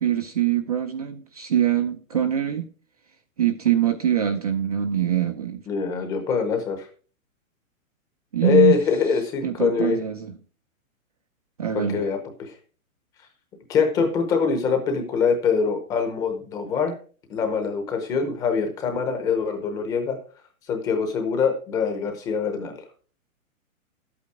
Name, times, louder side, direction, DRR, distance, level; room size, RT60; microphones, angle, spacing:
voice 1, 0.0-2.7 3.4-5.6 8.3-8.8 9.4-10.4 11.6-12.0, right 10 dB, 30° right, 0.5 m, -23 dB
voice 2, 5.7-6.9 8.4-10.0 11.9-12.5 13.7-17.0 17.3-20.2 20.7-22.8, left 6 dB, 10° left, 0.8 m, -23 dB
11.5 x 8.6 x 4.7 m
hypercardioid pair, 175°, 41 cm